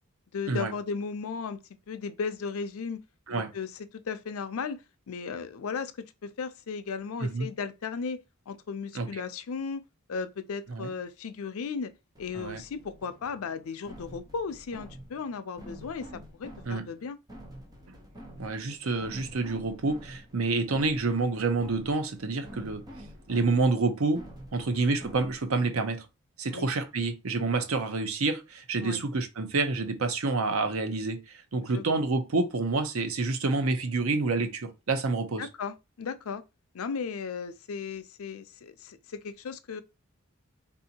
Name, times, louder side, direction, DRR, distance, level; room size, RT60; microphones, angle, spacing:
voice 1, 0.3-1.6 1.9-3.0 3.3-5.9 6.2-8.2 8.5-9.8 10.1-17.2 24.6-24.9 26.5-26.7 28.8-29.0 31.6-32.0 35.4-36.4 36.7-39.8, left 5 dB, 85° left, 0.5 m, -36 dB
sound 1, 12.1-25.6, equal, 20° right, 0.7 m, -48 dB
voice 2, 18.4-22.8 23.3-24.2 24.5-26.1 26.4-31.2 31.5-35.5, right 3 dB, 80° right, 0.7 m, -28 dB
3.4 x 2.7 x 2.7 m
head